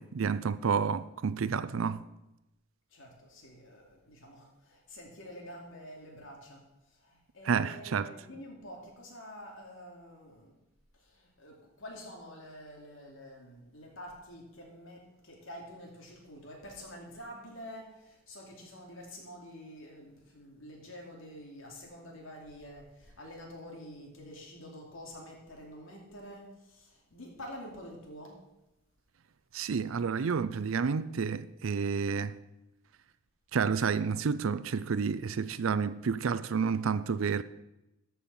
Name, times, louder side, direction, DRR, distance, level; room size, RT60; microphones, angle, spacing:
voice 1, 0.0-2.0 7.5-8.1 29.5-32.4 33.5-37.4, right 6 dB, 80° right, 0.4 m, -30 dB
voice 2, 2.9-6.6 6.9-10.6 11.0-28.4, equal, 80° left, 2.6 m, -48 dB
13.5 x 5.6 x 6.0 m
head